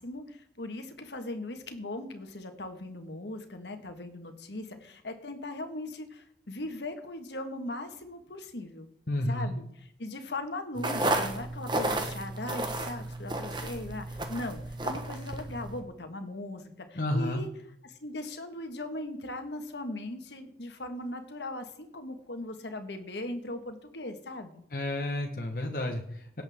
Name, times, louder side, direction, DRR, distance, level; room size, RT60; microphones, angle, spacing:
voice 1, 0.0-8.9 9.3-9.6 10.0-17.5 17.8-24.6, left 2 dB, 80° left, 6 dB, 1.6 m, -39 dB
voice 2, 9.1-9.5 16.9-17.4 24.7-26.4, left 1 dB, 50° left, 2 dB, 1.2 m, -31 dB
sound 1, 10.8-15.8, right 2 dB, 25° right, 1.2 m, -32 dB
17.5 x 7.9 x 3.6 m, 0.72 s
head